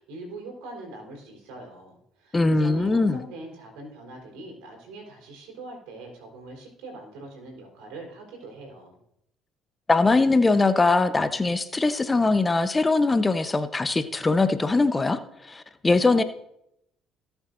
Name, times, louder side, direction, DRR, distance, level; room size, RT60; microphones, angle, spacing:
voice 1, 0.0-9.0, right 2 dB, 75° right, 1 dB, 4.1 m, -42 dB
voice 2, 2.3-3.2 9.9-15.2 15.5-16.2, left 3 dB, 25° left, 10 dB, 0.9 m, -21 dB
18.5 x 7.2 x 2.6 m, 0.77 s
hypercardioid pair, 60°, 0 cm